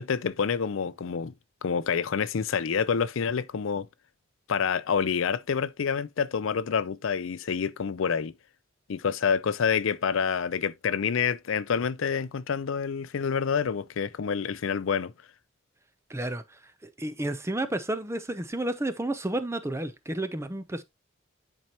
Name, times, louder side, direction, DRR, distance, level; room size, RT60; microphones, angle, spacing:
voice 1, 0.0-1.3 1.6-3.9 4.5-8.3 8.9-15.1, left 6 dB, 70° left, 0.5 m, -27 dB
voice 2, 16.1-16.4 16.8-20.8, right 1 dB, 15° right, 0.6 m, -31 dB
10.5 x 4.6 x 2.9 m
head